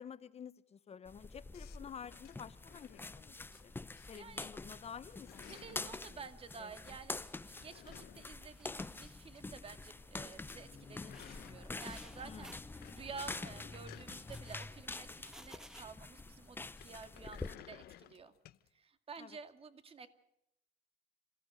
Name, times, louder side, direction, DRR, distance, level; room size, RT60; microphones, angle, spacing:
voice 1, 0.0-3.7 4.1-5.9 6.6-6.7 12.2-12.5 19.2-19.3, left 7 dB, 40° left, 15 dB, 1.0 m, -50 dB
sound 1, 1.1-17.5, left 3 dB, 10° left, 0.7 m, -47 dB
sound 2, 1.5-3.6 4.0-4.5 4.8-6.0 7.3-9.4 9.7-9.8 10.1-10.2 10.3-12.1 12.5-15.6 16.6-18.7, left 14 dB, 70° left, 0.9 m, -58 dB
sound 3, 3.5-3.7 5.0-5.9 6.7-6.8 7.1-8.2 8.5-9.4 9.7-10.0 10.9-12.7 13.1-13.5 14.1-15.8, equal, 5° right, 1.4 m, -59 dB
voice 2, 4.1-4.5 5.5-18.4 18.7-20.1, right 5 dB, 35° right, 9 dB, 2.2 m, -51 dB
27.5 x 16.0 x 6.7 m, 0.81 s
cardioid pair, 110°, 17 cm